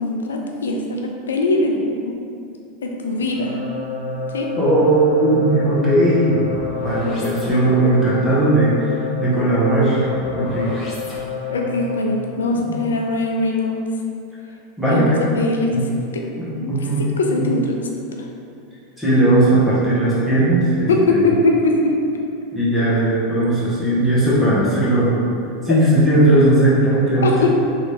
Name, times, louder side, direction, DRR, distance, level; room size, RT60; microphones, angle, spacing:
voice 1, 0.0-1.7 2.8-3.6 4.3-4.5 11.5-13.8 14.9-15.1 15.4-15.8 16.1-16.8 17.1-17.8 18.2-18.3 20.9-22.0 25.7-25.8 27.2-27.5, left 2 dB, 85° left, 1 dB, 0.4 m, -21 dB
sound 1, 3.3-12.1, left 3 dB, 35° left, 0.9 m, -28 dB
voice 2, 4.6-6.4 6.8-8.7 9.2-10.0 10.3-10.8 12.7-12.8 14.8-15.2 15.7-15.8 16.4-17.1 17.3-17.5 19.0-21.2 22.5-25.2 25.6-27.5, right 1 dB, 5° right, -10 dB, 1.4 m, -17 dB
3.1 x 3.0 x 2.8 m, 2.6 s
hypercardioid pair, 95°, 0 cm